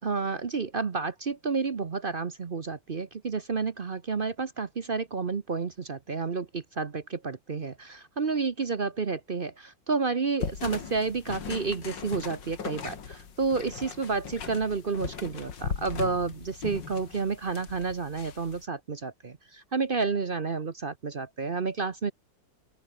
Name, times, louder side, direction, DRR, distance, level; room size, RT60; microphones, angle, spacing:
voice 1, 0.0-22.1, right 4 dB, 40° right, 0.9 m, -30 dB
sound 1, 10.4-18.6, left 6 dB, 75° left, 2.7 m, -38 dB
open air
omnidirectional pair, 2.0 m